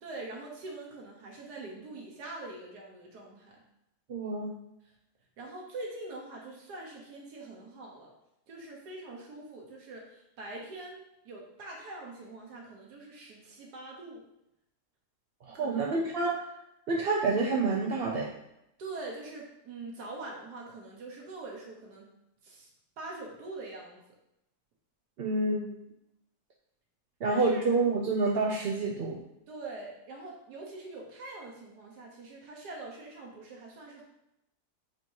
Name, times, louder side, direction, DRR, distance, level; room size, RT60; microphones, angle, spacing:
voice 1, 0.0-3.6 5.4-8.1 8.5-14.2 15.5-15.9 18.8-22.1 22.4-22.7 23.0-24.0 27.3-27.6 29.5-34.0, right 2 dB, 80° right, -1 dB, 1.6 m, -44 dB
voice 2, 4.1-4.6 15.4-16.4 16.9-18.3 25.2-25.8 27.2-29.2, right 3 dB, 60° right, -2 dB, 0.6 m, -28 dB
7.9 x 2.7 x 4.6 m, 0.84 s
omnidirectional pair, 1.7 m